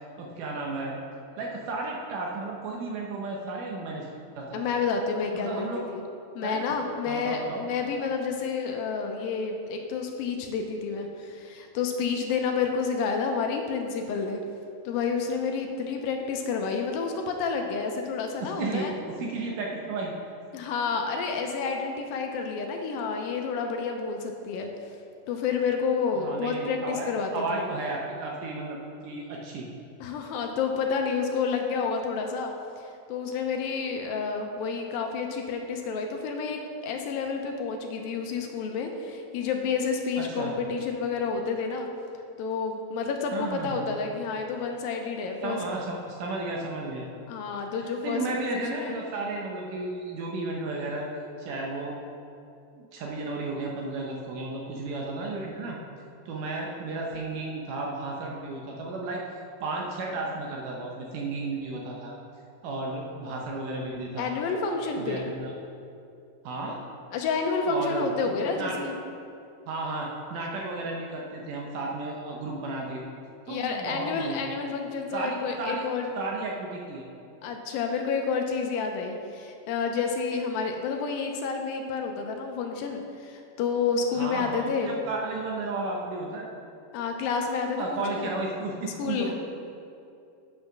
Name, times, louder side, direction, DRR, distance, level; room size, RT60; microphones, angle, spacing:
voice 1, 0.2-1.0 1.4-4.1 4.4-4.7 5.3-5.8 6.4-6.7 7.1-7.7 18.4-20.1 26.1-27.1 27.3-29.7 40.2-40.5 43.3-43.8 45.4-47.1 48.0-51.1 51.4-52.0 52.7-55.8 56.3-59.2 59.6-62.1 62.6-64.4 65.0-65.5 66.4-66.8 67.6-68.7 69.7-73.0 73.5-74.4 75.1-75.8 76.2-77.1 84.1-86.5 87.8-89.3, right 3 dB, 70° right, -1 dB, 2.1 m, -33 dB
voice 2, 4.5-6.0 6.4-14.4 14.9-18.9 20.5-24.7 25.3-27.7 30.0-41.9 42.4-45.6 47.3-48.2 48.5-48.9 64.2-65.3 67.1-68.9 73.5-76.1 77.4-84.9 86.9-88.4 89.0-89.3, left 5 dB, 80° left, 3 dB, 2.3 m, -29 dB
8.8 x 5.5 x 6.0 m, 2.6 s
omnidirectional pair, 4.4 m